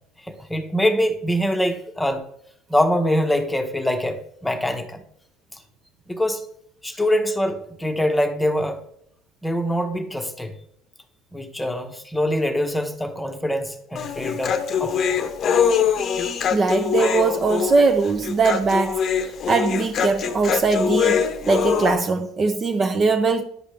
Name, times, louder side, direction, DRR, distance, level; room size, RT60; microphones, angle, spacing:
voice 1, 0.2-2.2 2.7-5.0 6.1-6.4 6.8-8.8 9.4-10.6 11.3-14.5 14.8-15.2, equal, 5° left, 0.9 m, -24 dB
Human voice, 14.0-22.0, left 7 dB, 45° left, 0.7 m, -23 dB
voice 2, 16.5-23.4, right 4 dB, 35° right, 0.5 m, -21 dB
9.6 x 5.1 x 3.4 m
supercardioid pair, 90°, 0 cm